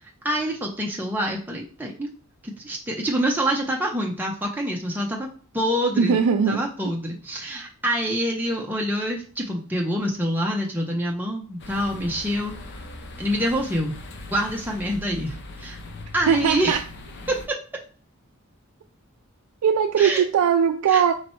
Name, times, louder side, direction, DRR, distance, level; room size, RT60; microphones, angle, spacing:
voice 1, 0.2-2.1 2.4-5.3 5.5-6.2 6.5-12.5 13.2-14.0 14.3-15.8 16.1-16.8 17.3-17.6 20.0-20.2 20.9-21.1, equal, 10° right, 0.5 m, -26 dB
voice 2, 6.0-6.9 16.3-16.8 19.6-21.1, right 7 dB, 85° right, 0.3 m, -20 dB
sound 1, 11.6-17.5, left 2 dB, 50° left, 0.6 m, -40 dB
4.2 x 3.1 x 3.0 m
head